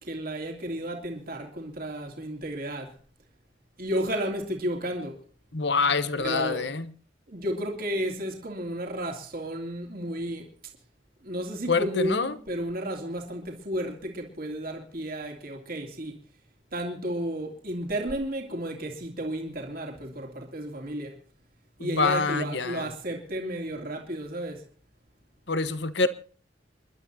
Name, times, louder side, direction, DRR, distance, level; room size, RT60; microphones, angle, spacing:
voice 1, 0.0-3.0 3.8-5.2 6.2-6.6 7.3-10.5 11.2-16.2 16.7-21.2 21.8-24.7, right 1 dB, 50° right, 2.9 m, -33 dB
voice 2, 5.5-6.9 11.7-12.4 21.8-22.9 25.5-26.1, left 4 dB, 70° left, 1.2 m, -26 dB
29.0 x 12.0 x 2.8 m
head